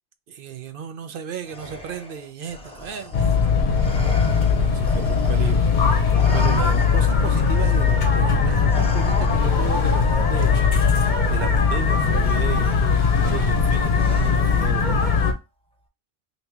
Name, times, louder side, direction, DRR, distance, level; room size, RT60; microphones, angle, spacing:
voice 1, 0.3-3.4 4.7-5.6 6.3-10.6 11.3-12.8 13.2-15.2, right 8 dB, 60° right, 0.7 m, -34 dB
Respiratory sounds, 1.4-5.8 6.1-9.8 11.0-11.2 12.2-12.8 14.0-14.6, left 1 dB, 5° left, 0.6 m, -39 dB
sound 1, 3.1-15.3, left 5 dB, 50° left, 0.8 m, -19 dB
3.0 x 2.7 x 3.4 m
omnidirectional pair, 1.1 m